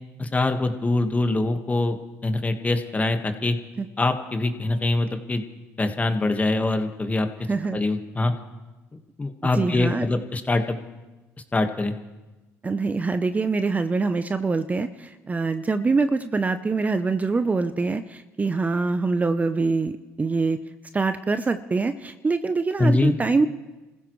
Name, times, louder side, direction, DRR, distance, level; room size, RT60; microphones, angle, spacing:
voice 1, 0.2-2.0 2.2-3.6 4.0-5.4 5.8-7.3 7.7-8.3 9.2-10.8 11.5-11.9 22.8-23.1, left 2 dB, 20° left, 7 dB, 1.5 m, -23 dB
voice 2, 9.5-10.1 12.6-20.6 20.9-23.5, right 4 dB, 25° right, 10 dB, 0.7 m, -24 dB
27.0 x 15.5 x 3.2 m, 1.1 s
supercardioid pair, 75°, 7 cm